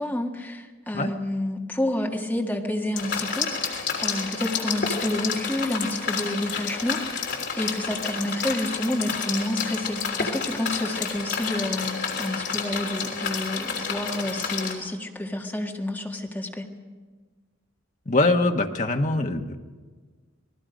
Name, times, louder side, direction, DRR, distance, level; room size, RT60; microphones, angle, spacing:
voice 1, 0.0-7.3 7.6-16.6, left 1 dB, 10° left, 1 dB, 1.7 m, -29 dB
sound 1, 3.0-14.7, left 6 dB, 55° left, 3.2 m, -30 dB
voice 2, 18.0-19.6, left 2 dB, 35° left, 4 dB, 1.3 m, -23 dB
28.5 x 19.5 x 5.2 m, 1.4 s
head